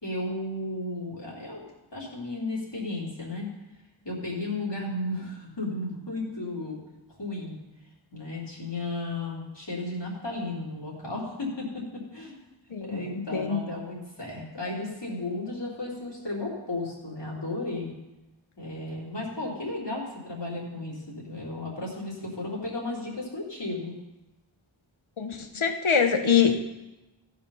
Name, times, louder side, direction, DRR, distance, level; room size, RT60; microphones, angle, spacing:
voice 1, 0.0-1.7 1.9-3.5 4.0-6.8 7.1-7.6 8.1-12.4 12.9-17.9 18.6-23.9, left 2 dB, 60° left, -4 dB, 3.2 m, -34 dB
voice 2, 12.7-13.6 25.2-26.6, left 7 dB, 85° left, 6 dB, 1.1 m, -24 dB
14.5 x 5.2 x 5.6 m, 1.0 s
wide cardioid pair, 55°, 47 cm